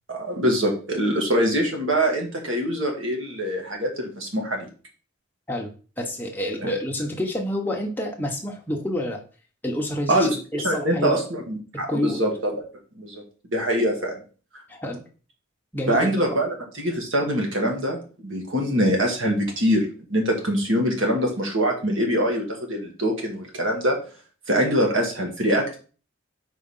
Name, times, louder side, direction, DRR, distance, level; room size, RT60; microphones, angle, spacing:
voice 1, 0.1-4.7 6.6-6.7 10.1-10.4 10.6-12.5 13.0-13.2 13.5-14.1 15.9-24.0 24.5-25.8, equal, 70° right, 1 dB, 1.7 m, -24 dB
voice 2, 5.5-9.2 9.6-11.2 11.9-12.2 14.7-15.0 15.7-16.4, left 1 dB, 10° left, 0 dB, 1.0 m, -28 dB
4.9 x 3.8 x 5.5 m, 0.37 s
head